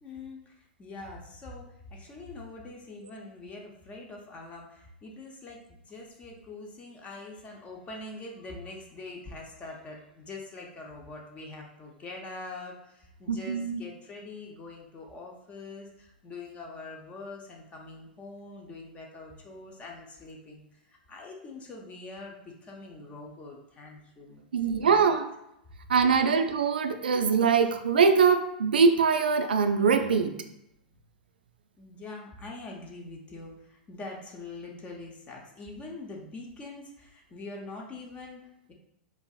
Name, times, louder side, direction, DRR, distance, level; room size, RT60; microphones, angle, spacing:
voice 1, 0.0-24.4 24.8-25.1 31.8-38.7, left 3 dB, 25° left, 0 dB, 0.6 m, -44 dB
voice 2, 13.3-13.8 24.5-25.3 25.9-30.3, right 5 dB, 80° right, 7 dB, 0.4 m, -23 dB
4.7 x 2.4 x 2.3 m, 0.82 s
hypercardioid pair, 100°, 5 cm